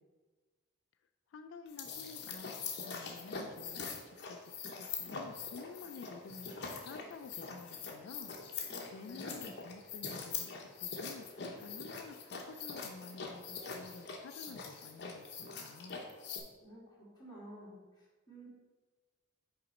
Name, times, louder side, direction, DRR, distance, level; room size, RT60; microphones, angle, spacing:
voice 1, 1.3-2.5 2.8-8.4 8.9-16.0, left 5 dB, 75° left, 9 dB, 0.3 m, -51 dB
sound 1, 1.7-16.4, left 5 dB, 55° left, 0.8 m, -43 dB
voice 2, 8.7-9.5 16.6-18.5, right 1 dB, 20° left, -7 dB, 2.0 m, -52 dB
5.7 x 3.9 x 5.2 m, 1.3 s
head